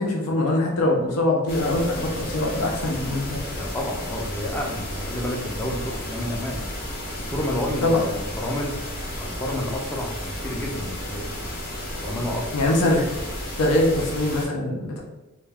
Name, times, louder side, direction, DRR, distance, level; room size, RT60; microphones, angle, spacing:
voice 1, 0.0-3.4 7.8-8.0 12.5-13.1 13.6-15.0, left 2 dB, 80° left, -1 dB, 0.5 m, -22 dB
sound 1, 1.5-14.5, left 1 dB, 40° left, 0.7 m, -33 dB
voice 2, 3.5-6.7 7.3-8.8 9.2-11.2 12.0-12.6, left 1 dB, 10° left, -1 dB, 0.4 m, -30 dB
2.2 x 2.2 x 3.3 m, 1.0 s
head